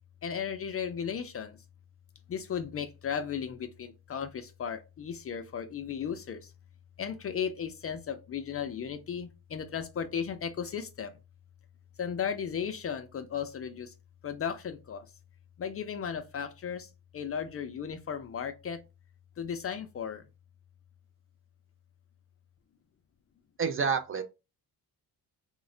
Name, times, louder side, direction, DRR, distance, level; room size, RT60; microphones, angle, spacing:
voice 1, 0.2-1.6 2.3-6.5 7.0-11.1 12.0-13.9 14.2-15.1 15.6-18.8 19.4-20.2, left 7 dB, 35° left, 0.4 m, -35 dB
voice 2, 23.6-24.2, right 6 dB, 35° right, 0.4 m, -28 dB
3.1 x 2.1 x 3.6 m
cardioid pair, 130°, 40 cm